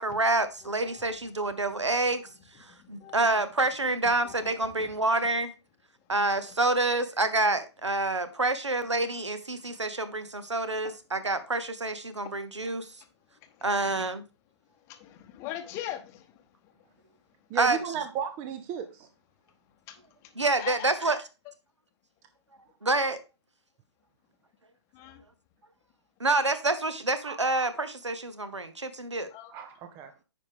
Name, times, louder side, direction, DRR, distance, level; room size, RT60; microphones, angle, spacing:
voice 1, 0.0-2.2 2.9-5.5 6.1-12.9 13.6-14.2 17.5-17.8 20.4-21.2 22.8-23.2 26.2-29.3, right 2 dB, 80° right, 12 dB, 1.1 m, -27 dB
voice 2, 0.6-1.1 1.8-2.4 2.7-3.5 4.0-4.9 6.5-6.6 13.6-14.1 14.9-16.2 20.6-20.9 24.9-25.2 29.3-29.5, left 12 dB, 20° left, 7 dB, 0.8 m, -42 dB
voice 3, 17.5-19.1 27.2-27.4 29.5-30.1, right 8 dB, 15° right, 9 dB, 0.4 m, -35 dB
9.5 x 5.1 x 3.6 m, 0.29 s
figure-of-eight pair, 135°, 15 cm